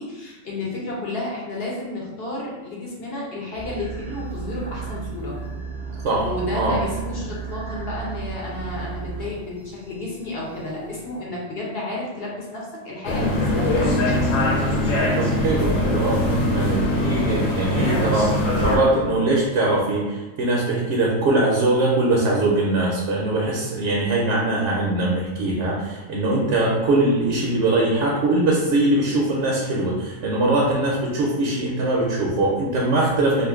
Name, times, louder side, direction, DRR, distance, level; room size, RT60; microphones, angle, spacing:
voice 1, 0.0-5.4 6.2-14.2, left 2 dB, 55° left, -4 dB, 0.8 m, -31 dB
sound 1, 3.5-11.2, right 5 dB, 25° right, 0.6 m, -34 dB
sound 2, 13.0-18.8, left 1 dB, 80° left, 1.0 m, -21 dB
voice 2, 15.2-33.5, right 2 dB, 70° right, -3 dB, 0.8 m, -22 dB
2.5 x 2.5 x 3.5 m, 1.2 s
omnidirectional pair, 1.3 m